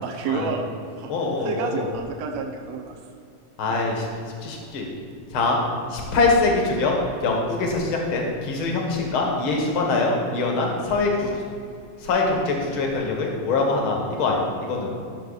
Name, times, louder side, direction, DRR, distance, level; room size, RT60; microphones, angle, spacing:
voice 1, 0.0-1.1 1.4-3.0 3.7-3.9, right 5 dB, 65° right, 2 dB, 1.9 m, -30 dB
voice 2, 1.1-1.9 3.6-4.1 4.4-4.9 5.3-5.6 5.9-6.9 7.2-11.3 12.0-14.9, left 3 dB, 50° left, 0 dB, 1.8 m, -23 dB
13.5 x 6.7 x 4.1 m, 2.4 s
omnidirectional pair, 3.9 m